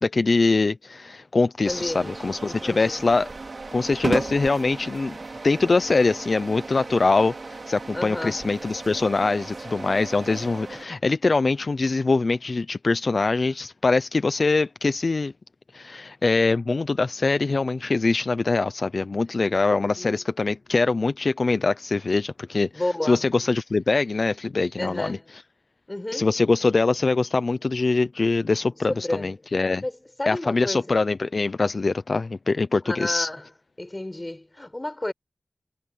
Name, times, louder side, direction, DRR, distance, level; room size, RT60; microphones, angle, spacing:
voice 1, 0.0-3.3 3.7-5.2 5.4-15.3 15.7-22.7 23.0-25.2 26.1-29.8 30.3-33.3, left 3 dB, 70° left, 0.5 m, -23 dB
sound 1, 1.6-10.9, right 3 dB, 70° right, 3.4 m, -35 dB
voice 2, 1.7-3.0 7.9-8.4 19.5-20.2 22.7-23.2 24.8-25.3 25.9-26.3 28.9-29.3 29.8-31.0 32.8-33.5 33.8-35.1, left 1 dB, 30° left, 6.7 m, -31 dB
wide cardioid pair, 55°, 0 cm